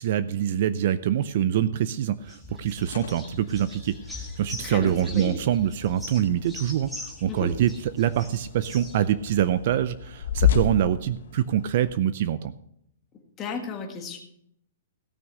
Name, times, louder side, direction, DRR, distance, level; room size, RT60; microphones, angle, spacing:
voice 1, 0.0-12.5, right 10 dB, 40° right, 14 dB, 0.5 m, -25 dB
sound 1, 2.2-9.1, left 2 dB, ahead, 1.7 m, -42 dB
sound 2, 2.5-11.9, left 9 dB, 65° left, 1.3 m, -33 dB
voice 2, 4.6-5.4 7.3-7.5 13.4-14.2, left 5 dB, 15° left, 2 dB, 1.7 m, -34 dB
17.0 x 6.4 x 6.1 m, 0.71 s
hypercardioid pair, 175°, 0 cm